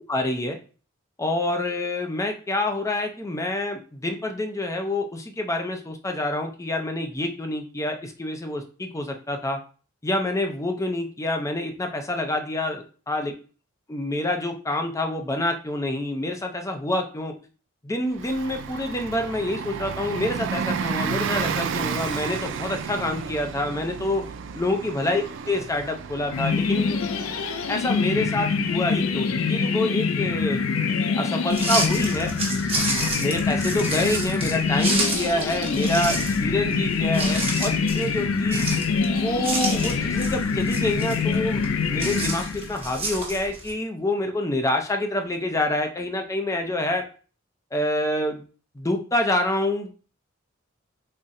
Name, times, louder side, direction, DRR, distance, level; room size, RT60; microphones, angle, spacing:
voice 1, 0.1-0.6 1.2-9.6 10.0-13.3 13.9-17.3 17.8-24.2 24.5-27.0 27.7-30.6 31.2-32.3 33.2-38.7 39.1-41.6 41.9-47.0 47.7-48.4 48.7-49.9, left 1 dB, 15° left, 4 dB, 0.5 m, -27 dB
Bus, 18.1-30.4, right 6 dB, 65° right, 0.3 m, -33 dB
sound 1, 26.3-42.9, left 5 dB, 90° left, 0.4 m, -25 dB
sound 2, 31.5-43.7, right 2 dB, 30° right, 1.0 m, -31 dB
4.1 x 2.1 x 3.6 m, 0.38 s
head